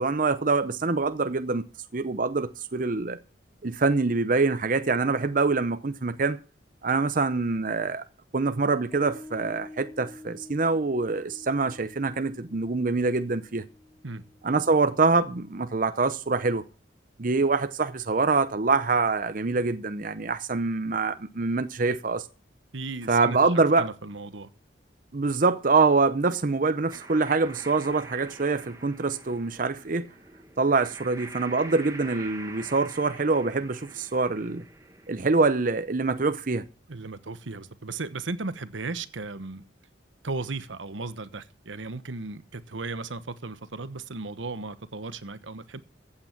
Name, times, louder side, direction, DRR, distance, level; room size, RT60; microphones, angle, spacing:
voice 1, 0.0-1.6 1.9-3.2 3.6-6.4 6.8-8.0 8.3-13.6 14.4-16.6 17.2-22.3 23.1-23.9 25.1-30.1 30.6-34.6 35.1-36.6, right 3 dB, 45° right, 0.7 m, -25 dB
sound 1, 8.6-15.5, left 1 dB, 20° left, 2.4 m, -48 dB
voice 2, 22.7-24.5 36.9-39.6 40.2-45.8, right 3 dB, 80° right, 1.2 m, -36 dB
sound 2, 26.9-35.6, right 2 dB, 15° right, 1.6 m, -45 dB
15.0 x 8.8 x 6.0 m
head